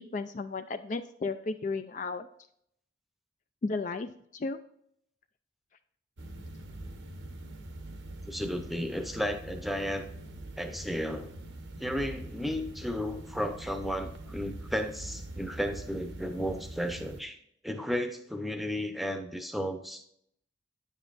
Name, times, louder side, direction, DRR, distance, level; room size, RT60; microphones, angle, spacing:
voice 1, 0.0-2.3 3.6-4.6, left 3 dB, 40° left, 9 dB, 0.3 m, -34 dB
sound 1, 6.2-17.2, right 1 dB, 85° right, 1.1 m, -43 dB
voice 2, 8.3-10.1 10.6-11.3 11.8-17.4 17.6-20.0, equal, ahead, 6 dB, 0.7 m, -33 dB
9.5 x 7.3 x 2.5 m, 0.72 s
head